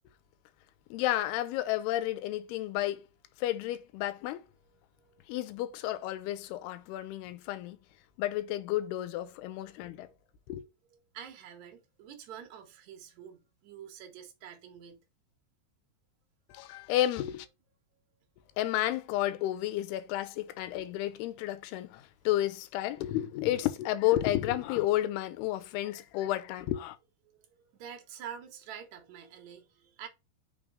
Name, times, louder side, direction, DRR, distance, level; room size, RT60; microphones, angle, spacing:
voice 1, 0.9-3.0 3.4-4.5 5.3-7.8 8.2-10.1 10.5-10.6 16.5-17.5 18.6-27.0, left 14 dB, 80° left, 2.7 m, -31 dB
voice 2, 11.1-15.0 17.9-18.0 27.3-27.5 27.7-30.1, right 8 dB, 65° right, 1.9 m, -47 dB
6.0 x 3.5 x 5.0 m
omnidirectional pair, 4.7 m